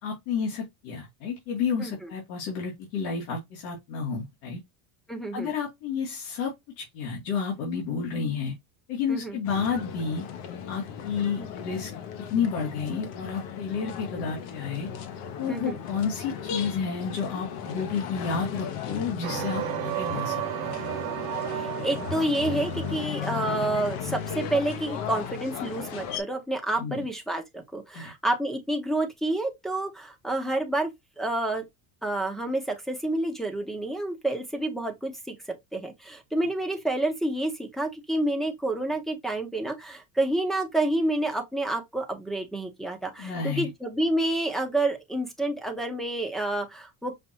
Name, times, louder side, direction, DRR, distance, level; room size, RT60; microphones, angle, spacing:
voice 1, 0.0-4.6 5.3-8.5 8.9-10.2 10.7-11.9 12.3-14.9 15.4-20.7 26.8-27.0 27.9-28.1 43.2-43.7, left 6 dB, 85° left, 2.0 m, -31 dB
voice 2, 5.1-5.5 9.1-9.4 11.4-11.5 15.5-15.8 21.5-30.9 31.2-31.7 32.0-35.4 35.7-47.1, right 1 dB, ahead, 0.9 m, -29 dB
sound 1, 9.4-26.2, left 8 dB, 60° left, 1.1 m, -36 dB
sound 2, 19.2-24.3, right 13 dB, 70° right, 0.8 m, -34 dB
5.6 x 2.5 x 2.9 m
cardioid pair, 140°, 42 cm